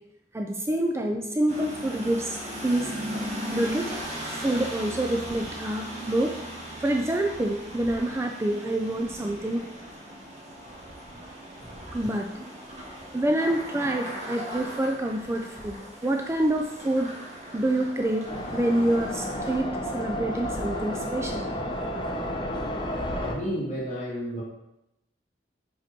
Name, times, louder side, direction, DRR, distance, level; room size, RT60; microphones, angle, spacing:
voice 1, 0.3-2.9 3.5-4.0 4.3-6.4 6.8-9.7 11.9-12.5 13.0-17.1 17.5-18.3 18.5-21.4, right 1 dB, 15° right, 3 dB, 0.4 m, -27 dB
sound 1, 1.5-19.6, right 1 dB, 40° right, 1.8 m, -38 dB
sound 2, 18.3-23.3, left 1 dB, 25° left, 0.8 m, -31 dB
voice 2, 23.2-24.4, equal, 45° left, -6 dB, 2.4 m, -32 dB
5.7 x 5.3 x 4.3 m, 0.87 s
head